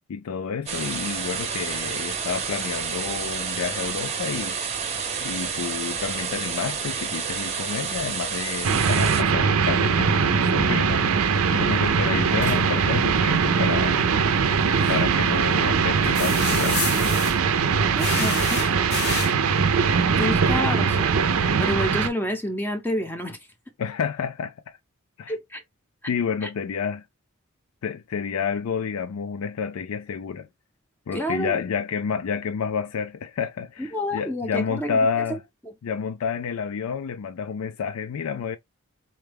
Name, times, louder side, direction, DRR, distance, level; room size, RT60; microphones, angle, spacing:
voice 1, 0.1-4.9 5.2-14.0 14.9-16.9 23.8-24.8 25.2-25.4 26.1-27.0 27.8-30.5 31.1-35.4 35.8-38.6, left 6 dB, 75° left, 0.4 m, -29 dB
sound 1, 0.7-9.2, right 6 dB, 30° right, 0.7 m, -29 dB
sound 2, 8.6-22.1, right 5 dB, 75° right, 0.5 m, -21 dB
sound 3, 12.3-12.6 14.8-15.0 16.0-17.4 18.0-19.3, left 6 dB, 45° left, 0.7 m, -30 dB
voice 2, 18.0-18.6 20.2-21.1 21.6-23.4 25.3-25.6 26.4-26.5 31.1-31.6 33.8-35.2, left 1 dB, 10° left, 0.6 m, -28 dB
4.3 x 2.2 x 3.3 m
head